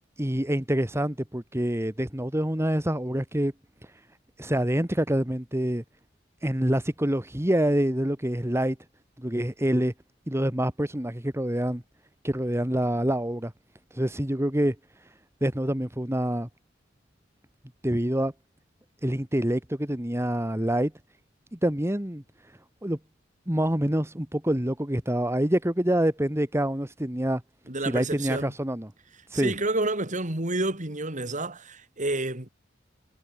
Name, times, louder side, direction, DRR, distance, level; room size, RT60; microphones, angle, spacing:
voice 1, 0.2-3.5 3.8-3.9 4.4-5.8 6.4-8.8 9.2-9.9 10.3-11.8 12.2-13.5 13.9-14.8 15.4-16.5 17.8-18.3 19.0-20.9 21.5-22.2 22.8-23.0 23.5-27.4 27.8-28.9 29.3-29.5, right 1 dB, 15° right, 2.0 m, -26 dB
voice 2, 27.7-28.5 29.3-32.5, right 2 dB, 40° right, 3.7 m, -29 dB
head